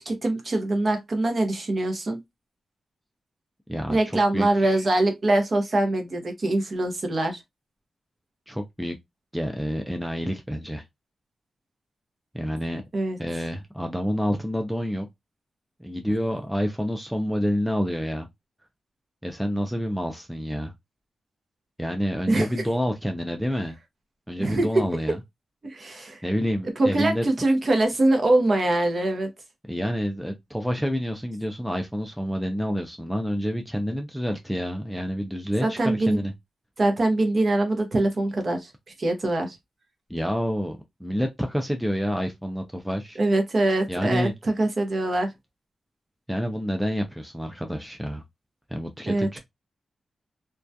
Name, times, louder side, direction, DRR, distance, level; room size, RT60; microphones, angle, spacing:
voice 1, 0.0-2.2 3.9-7.4 12.9-13.2 22.3-22.5 24.4-24.8 25.6-26.2 26.8-29.3 35.6-36.2 36.8-38.7 39.0-39.6 43.2-44.3 44.6-45.3 49.1-49.4, right 2 dB, 40° right, 0.7 m, -23 dB
voice 2, 3.7-4.8 8.5-9.0 9.3-10.8 12.3-12.8 13.2-15.1 15.8-18.3 19.2-20.7 21.8-23.8 24.3-25.2 26.2-27.2 29.7-36.3 40.1-43.2 43.9-44.3 46.3-48.2 48.7-49.4, equal, ahead, 0.3 m, -28 dB
2.2 x 2.2 x 2.6 m
wide cardioid pair, 145°, 0 cm